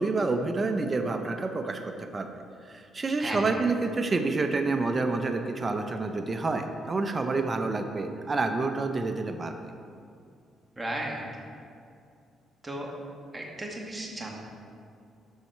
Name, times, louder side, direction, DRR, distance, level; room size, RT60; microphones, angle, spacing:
voice 1, 0.0-2.3 2.7-9.5, right 3 dB, 30° right, 5 dB, 0.6 m, -28 dB
voice 2, 10.8-11.2 12.6-12.9 13.3-14.4, right 1 dB, 15° right, -1 dB, 1.7 m, -35 dB
12.0 x 4.2 x 4.5 m, 2.4 s
cardioid pair, 90°, 0 cm